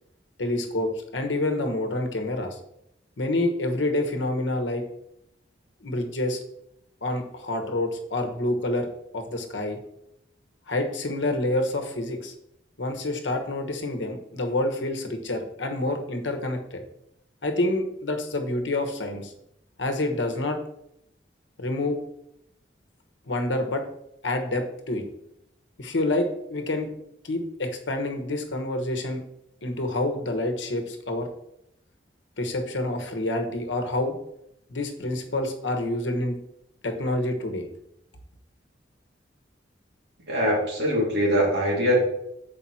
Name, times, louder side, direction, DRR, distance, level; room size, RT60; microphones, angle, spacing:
voice 1, 0.4-2.6 3.2-4.8 5.8-6.4 7.0-8.9 9.1-9.8 10.7-12.3 12.8-16.8 17.4-19.3 19.8-20.6 21.6-22.0 23.3-23.8 24.2-25.0 25.8-26.9 27.2-29.2 29.6-31.3 32.4-34.1 34.7-36.4 36.8-37.7, left 1 dB, 80° left, 4 dB, 1.1 m, -27 dB
voice 2, 40.3-41.9, equal, 60° right, -4 dB, 2.8 m, -22 dB
7.5 x 5.2 x 4.2 m, 0.79 s
head